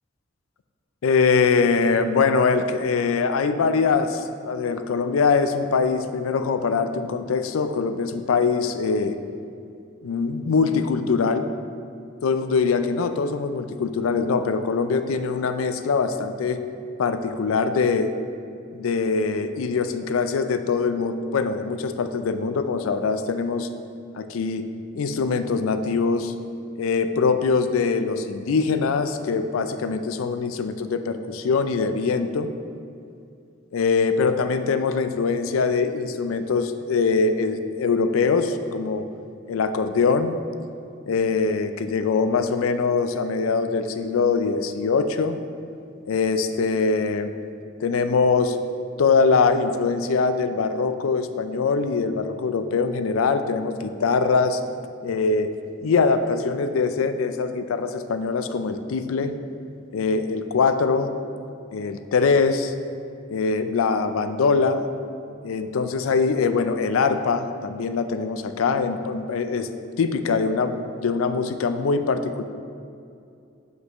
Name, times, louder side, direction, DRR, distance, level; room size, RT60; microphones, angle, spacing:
voice 1, 1.0-9.2 10.0-11.5 12.2-16.6 17.0-18.1 18.7-23.7 24.1-24.7 24.9-26.3 26.8-32.5 33.7-39.1 39.5-40.4 41.1-45.4 46.1-47.3 47.8-48.6 49.0-54.6 55.0-55.5 55.8-59.4 59.9-61.1 61.7-62.7 63.3-64.8 65.4-69.7 70.0-72.4, left 4 dB, 90° left, 10 dB, 0.4 m, -23 dB
7.9 x 5.3 x 3.0 m, 2.5 s
head